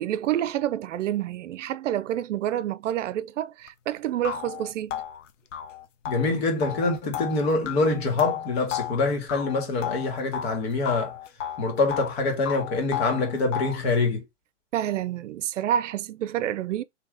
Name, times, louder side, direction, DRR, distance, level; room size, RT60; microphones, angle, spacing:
voice 1, 0.0-5.0 14.7-16.8, right 11 dB, 80° right, 0.5 m, -28 dB
sound 1, 3.7-3.8 4.2-10.6 10.9-12.2 12.5-13.9, left 9 dB, 85° left, 0.7 m, -33 dB
voice 2, 6.0-11.1 11.6-14.2, left 3 dB, 55° left, 1.7 m, -25 dB
3.4 x 2.9 x 3.7 m
hypercardioid pair, 145°, 36 cm